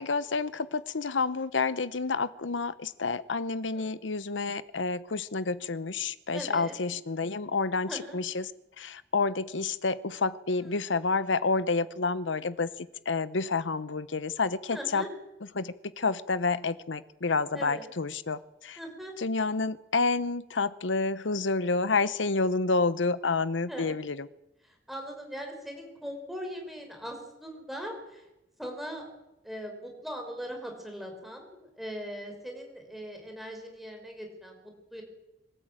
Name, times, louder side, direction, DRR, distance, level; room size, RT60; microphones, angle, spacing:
voice 1, 0.0-8.5 8.8-15.1 15.5-18.8 19.2-24.3, left 4 dB, 80° left, 15 dB, 0.9 m, -29 dB
voice 2, 6.3-6.7 7.9-8.2 10.6-10.8 14.7-15.1 17.5-17.9 18.8-19.1 23.7-24.0 24.6-28.2 28.6-29.1 29.4-35.0, equal, ahead, 2 dB, 5.6 m, -40 dB
25.0 x 13.5 x 8.9 m, 0.92 s
head